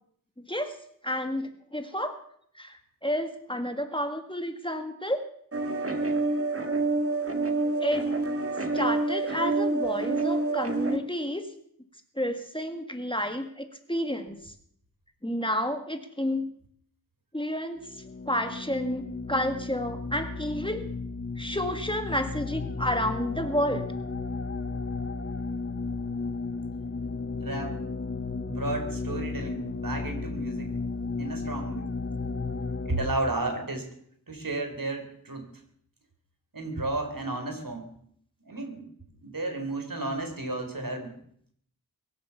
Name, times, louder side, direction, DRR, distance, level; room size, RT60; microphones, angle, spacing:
voice 1, 1.0-2.2 2.6-5.2 7.8-8.1 8.7-11.4 12.2-14.4 15.2-16.5 17.3-17.8 18.3-19.0 19.3-20.9 21.4-23.9, equal, 15° left, 7 dB, 1.7 m, -30 dB
sound 1, 5.5-11.0, right 3 dB, 40° right, 1.9 m, -27 dB
sound 2, 17.8-33.1, left 3 dB, 35° left, 0.8 m, -34 dB
voice 2, 27.4-27.8 28.5-30.8 31.2-31.9 32.8-33.9 34.3-35.5 36.5-37.9 38.4-38.9 39.2-41.2, right 2 dB, 65° right, 5 dB, 3.9 m, -32 dB
23.0 x 7.7 x 7.1 m, 0.66 s
wide cardioid pair, 50°, 36 cm